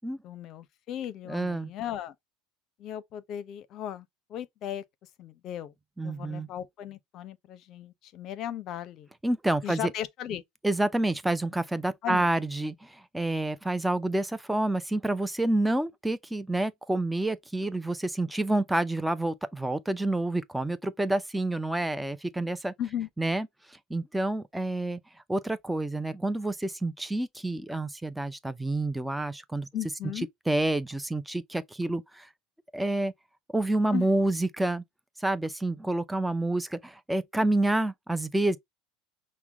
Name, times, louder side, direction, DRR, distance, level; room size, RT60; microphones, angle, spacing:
voice 1, 0.2-2.1 2.8-4.8 5.2-5.7 6.0-9.1 9.6-10.4 12.0-12.3 22.8-23.1 29.7-30.3 33.9-34.1, left 10 dB, 50° left, 0.6 m, -36 dB
voice 2, 1.3-1.7 6.0-6.5 9.2-9.9 10.6-22.7 23.2-23.5 23.9-25.0 25.3-29.7 30.5-32.3 32.7-33.1 33.5-34.8 35.2-38.6, right 2 dB, 5° right, 0.5 m, -28 dB
5.8 x 2.2 x 3.4 m
hypercardioid pair, 80°, 0 cm